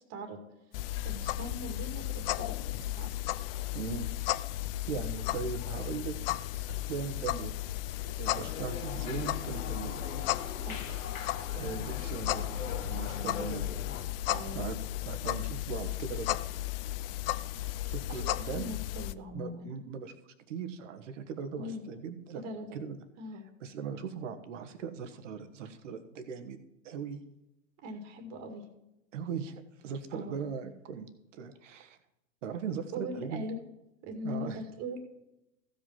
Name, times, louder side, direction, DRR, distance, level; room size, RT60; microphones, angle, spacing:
sound 1, 0.7-19.1, left 15 dB, 45° left, 0.5 m, -35 dB
voice 1, 1.0-3.1 10.6-10.8 14.3-14.6 18.1-19.7 21.6-21.8 22.3-22.8 23.2-23.4 27.8-28.6 30.1-30.4 32.9-33.7 34.0-35.0, equal, 40° right, 5 dB, 2.2 m, -41 dB
voice 2, 3.7-4.5 4.9-6.2 6.7-7.6 8.2-9.9 10.4-10.6 11.5-12.5 12.8-13.7 14.5-14.8 15.0-16.4 17.9-18.6 19.3-20.1 20.5-22.4 22.7-23.0 23.6-27.2 29.1-32.0 32.4-33.4 34.2-34.6, right 6 dB, 65° right, 9 dB, 1.5 m, -39 dB
sound 2, 8.3-14.0, left 5 dB, 80° left, 1.6 m, -41 dB
15.0 x 5.4 x 5.7 m, 0.88 s
hypercardioid pair, 105°, 40 cm